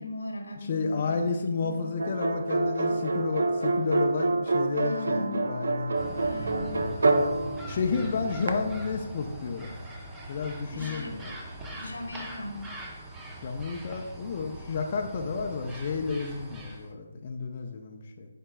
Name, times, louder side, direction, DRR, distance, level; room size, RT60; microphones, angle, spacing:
voice 1, 0.0-1.3 1.6-1.9 4.8-5.4 5.8-6.8 10.7-11.5 11.7-12.6, left 1 dB, 85° left, 4 dB, 1.1 m, -38 dB
voice 2, 0.7-5.9 7.7-9.7 10.3-11.2 13.4-18.3, left 4 dB, 40° left, 2 dB, 0.5 m, -31 dB
sound 1, 2.0-8.5, right 2 dB, 75° right, 0.6 m, -27 dB
sound 2, 5.9-16.9, right 1 dB, 10° right, 0.7 m, -41 dB
9.6 x 4.4 x 2.3 m, 0.98 s
figure-of-eight pair, 155°, 0 cm